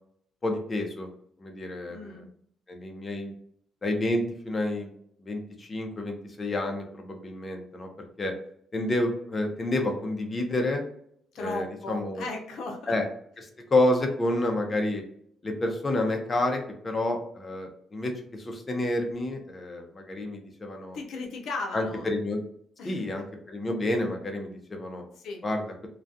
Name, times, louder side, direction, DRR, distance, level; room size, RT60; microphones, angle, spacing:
voice 1, 0.4-1.1 1.4-2.2 2.7-3.3 3.8-4.9 5.2-7.9 8.2-8.3 8.7-10.8 11.4-12.2 12.9-13.0 13.4-15.0 15.4-21.0 21.7-22.4 22.8-25.0 25.4-25.6, left 1 dB, 30° left, 3 dB, 0.6 m, -29 dB
voice 2, 1.9-2.3 11.3-12.9 20.9-22.1 22.8-23.2 25.2-25.4, left 3 dB, 75° left, 2 dB, 0.6 m, -36 dB
2.3 x 2.3 x 2.6 m, 0.67 s
cardioid pair, 90°, 0 cm